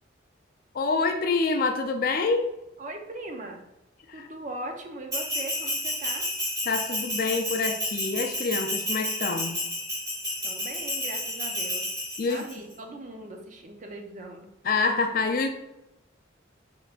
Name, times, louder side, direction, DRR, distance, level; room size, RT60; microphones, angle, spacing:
voice 1, 0.7-2.5 4.1-4.3 6.7-9.6 12.2-12.4 14.6-15.5, left 4 dB, 45° left, 7 dB, 0.3 m, -26 dB
voice 2, 2.8-3.6 4.1-6.2 10.4-11.9 12.3-14.5, right 2 dB, 40° right, 4 dB, 0.5 m, -39 dB
Bell, 5.1-12.5, left 1 dB, 15° right, 1.5 m, -31 dB
4.5 x 3.6 x 2.4 m, 0.92 s
head